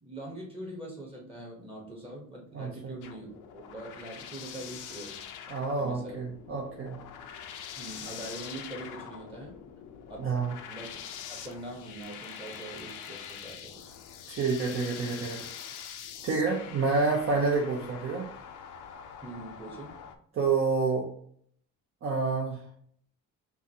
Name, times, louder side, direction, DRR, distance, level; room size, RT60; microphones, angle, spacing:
voice 1, 0.0-5.2 5.8-6.2 7.8-9.6 10.1-10.2 10.7-11.0 11.3-13.9 14.5-14.8 19.2-20.0, right 1 dB, 15° right, -2 dB, 1.0 m, -43 dB
voice 2, 2.5-2.9 5.5-7.0 10.2-10.5 14.3-15.5 16.2-18.3 20.3-21.1 22.0-22.6, right 4 dB, 45° right, -1 dB, 0.7 m, -28 dB
sound 1, 3.0-20.2, left 8 dB, 75° left, 0.6 m, -44 dB
5.7 x 2.5 x 2.8 m, 0.62 s
cardioid pair, 160°, 31 cm